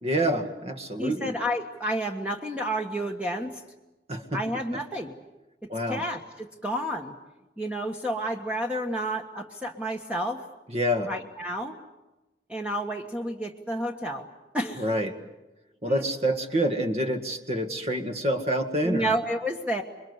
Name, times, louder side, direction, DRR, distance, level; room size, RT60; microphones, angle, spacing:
voice 1, 0.0-1.3 4.1-4.4 5.7-6.0 10.7-11.1 14.8-15.2 15.8-19.1, equal, 35° right, 6 dB, 2.0 m, -27 dB
voice 2, 1.0-3.6 4.3-5.1 5.9-7.1 7.6-10.4 11.1-11.8 12.5-14.3 14.5-14.9 15.8-16.0 18.8-19.8, equal, 5° right, 2 dB, 1.4 m, -30 dB
27.5 x 23.0 x 8.1 m, 1.0 s
head